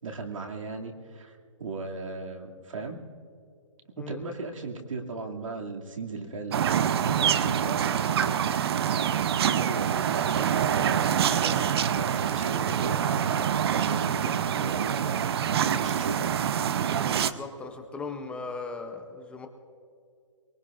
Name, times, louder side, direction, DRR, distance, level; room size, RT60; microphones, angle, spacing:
voice 1, 0.0-3.0 4.0-8.9 9.4-16.3, right 3 dB, 90° right, 1 dB, 2.4 m, -37 dB
voice 2, 4.0-4.3 17.0-19.5, left 4 dB, 5° left, 5 dB, 0.6 m, -38 dB
sound 1, 6.5-17.3, right 9 dB, 55° right, 0.7 m, -26 dB
23.0 x 21.5 x 2.5 m, 2.3 s
hypercardioid pair, 160°, 16 cm